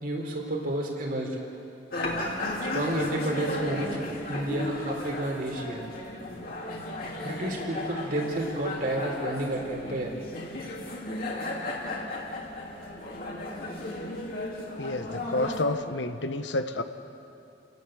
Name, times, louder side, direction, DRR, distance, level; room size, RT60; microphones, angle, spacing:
voice 1, 0.0-1.4 2.7-4.0 4.3-5.8 7.2-10.2, right 1 dB, 50° right, 0 dB, 4.0 m, -30 dB
sound 1, 1.9-15.6, left 2 dB, 50° left, 3.5 m, -35 dB
voice 2, 14.8-16.8, left 2 dB, 80° left, 9 dB, 1.2 m, -29 dB
28.5 x 18.5 x 7.8 m, 2.8 s
head